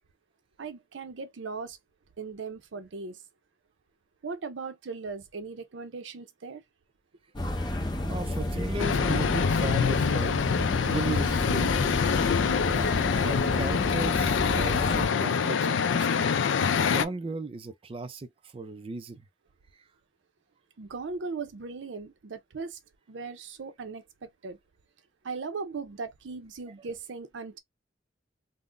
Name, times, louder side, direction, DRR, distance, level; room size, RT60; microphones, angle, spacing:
voice 1, 0.6-1.8 2.2-3.2 4.2-6.6 20.8-22.8 23.1-24.6 25.2-27.6, right 4 dB, 80° right, 0.6 m, -38 dB
sound 1, 7.4-15.1, left 1 dB, 25° left, 0.6 m, -31 dB
voice 2, 8.0-10.4 10.8-11.8 12.6-19.3, right 3 dB, 30° right, 0.4 m, -36 dB
sound 2, 8.8-17.0, left 6 dB, 80° left, 0.4 m, -25 dB
3.6 x 2.1 x 2.5 m
head